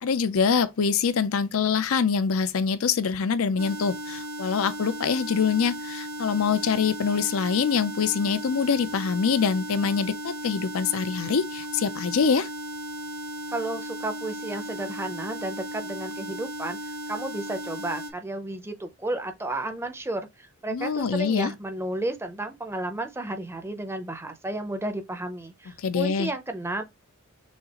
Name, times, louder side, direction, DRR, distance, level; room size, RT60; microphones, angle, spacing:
voice 1, 0.0-12.5 20.7-21.5 25.8-26.3, left 6 dB, 70° left, 0.5 m, -24 dB
sound 1, 3.6-18.1, right 1 dB, 85° right, 1.2 m, -36 dB
voice 2, 13.5-26.8, right 2 dB, 10° right, 0.7 m, -32 dB
6.4 x 2.4 x 2.9 m
head